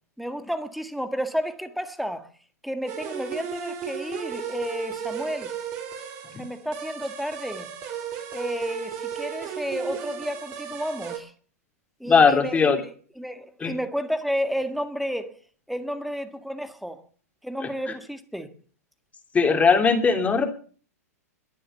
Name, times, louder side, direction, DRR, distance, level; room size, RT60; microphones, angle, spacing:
voice 1, 0.2-2.3 2.6-5.5 6.4-7.7 8.3-11.3 12.0-15.4 15.7-17.0 17.4-18.5, equal, ahead, 1.8 m, -31 dB
sound 1, 2.9-11.2, right 8 dB, 40° right, 4.3 m, -35 dB
voice 2, 12.1-12.8 13.6-13.7 19.3-20.5, left 5 dB, 15° left, 3.0 m, -19 dB
22.5 x 7.6 x 6.9 m
hypercardioid pair, 110°, 9 cm